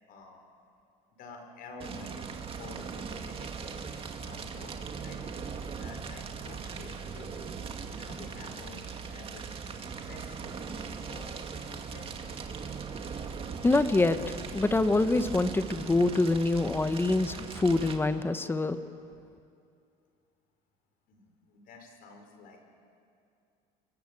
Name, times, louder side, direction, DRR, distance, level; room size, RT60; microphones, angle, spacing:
voice 1, 0.1-0.4 1.2-5.2 5.8-9.8 10.1-12.5 21.1-22.6, left 3 dB, 60° left, 4 dB, 5.4 m, -50 dB
Fire, 1.8-18.0, right 5 dB, 35° right, 2.2 m, -39 dB
voice 2, 13.6-18.8, left 2 dB, 15° left, 10 dB, 1.2 m, -25 dB
28.5 x 21.0 x 8.4 m, 2.4 s
cardioid pair, 125°, 17 cm